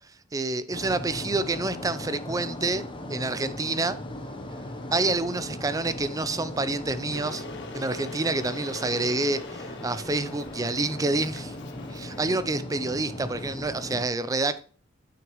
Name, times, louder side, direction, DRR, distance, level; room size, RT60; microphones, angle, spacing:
voice 1, 0.3-2.8 3.1-4.0 4.9-7.4 7.7-11.5 11.9-14.6, right 2 dB, 15° right, 0.5 m, -28 dB
sound 1, 0.7-14.1, left 1 dB, 25° left, 0.9 m, -38 dB
Water / Boiling, 7.1-12.2, left 2 dB, 60° left, 1.1 m, -43 dB
8.7 x 6.1 x 3.1 m
head